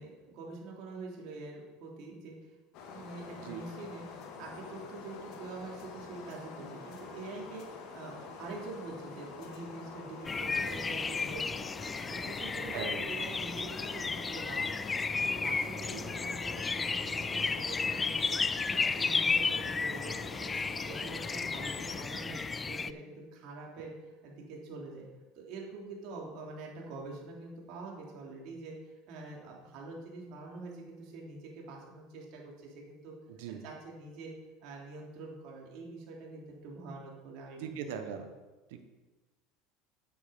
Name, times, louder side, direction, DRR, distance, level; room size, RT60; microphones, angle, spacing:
voice 1, 0.0-2.5 2.9-4.1 4.4-11.7 12.1-14.8 15.2-25.1 25.3-28.7 29.1-33.1 33.5-34.3 34.6-37.8, right 3 dB, 60° right, -2 dB, 3.1 m, -45 dB
sound 1, 2.7-22.0, left 5 dB, 65° left, 1.9 m, -47 dB
sound 2, 10.2-22.9, left 4 dB, 20° left, 0.4 m, -33 dB
voice 2, 33.3-33.6 37.6-38.3 38.7-38.8, right 8 dB, 75° right, 6 dB, 1.4 m, -40 dB
8.6 x 8.0 x 5.3 m, 1.2 s
supercardioid pair, 95°, 0 cm